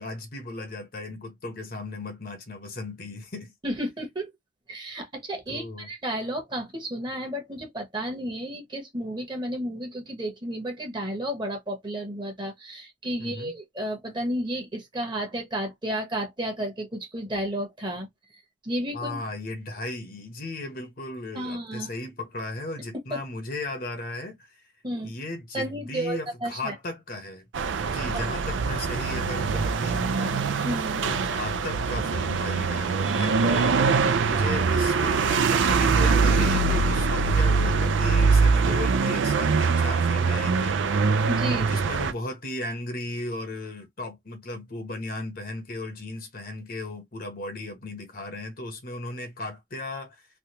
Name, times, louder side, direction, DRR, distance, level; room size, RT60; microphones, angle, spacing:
voice 1, 0.0-3.5 5.5-5.9 13.2-13.6 18.9-24.6 25.0-27.5 27.8-30.7 31.0-33.8 34.2-40.8 41.7-50.3, left 2 dB, 50° left, 0.9 m, -36 dB
voice 2, 3.6-4.3 4.7-18.1 18.6-19.2 21.3-21.9 23.1-23.2 24.8-25.1 25.5-26.7 30.6-31.0 34.0-34.2 41.3-41.7, right 1 dB, 25° right, 1.1 m, -32 dB
sound 1, 27.5-42.1, right 4 dB, 80° right, 0.4 m, -23 dB
3.3 x 2.3 x 2.8 m
head